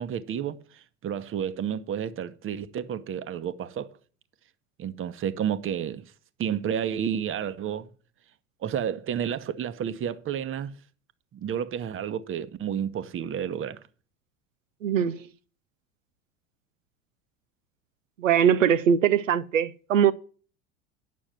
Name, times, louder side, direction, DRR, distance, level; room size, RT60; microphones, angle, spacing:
voice 1, 0.0-3.9 4.8-6.0 6.4-7.9 8.6-10.7 11.3-13.8, right 9 dB, 35° right, 1.0 m, -31 dB
voice 2, 14.8-15.2 18.2-20.1, right 8 dB, 85° right, 0.6 m, -21 dB
9.3 x 6.2 x 7.7 m
hypercardioid pair, 75°, 37 cm